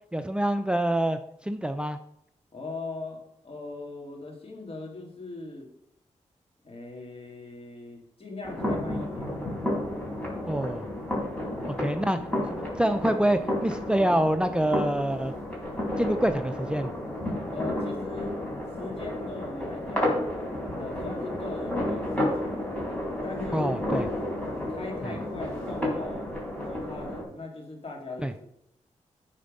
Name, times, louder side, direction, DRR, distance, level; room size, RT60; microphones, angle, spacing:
voice 1, 0.1-2.0 10.5-10.9 11.8-15.3 16.0-16.9 23.5-24.0 25.0-25.1 28.2-28.3, right 1 dB, 5° right, 9 dB, 0.5 m, -26 dB
voice 2, 2.5-5.7 6.6-9.4 11.5-11.9 17.5-18.4 18.8-20.2 20.7-22.8 23.2-24.1 24.7-26.3 26.7-28.5, left 3 dB, 50° left, 0 dB, 2.6 m, -40 dB
sound 1, 8.4-27.2, left 1 dB, 10° left, 3.9 m, -31 dB
10.0 x 4.4 x 5.4 m, 0.76 s
cardioid pair, 60°, 13 cm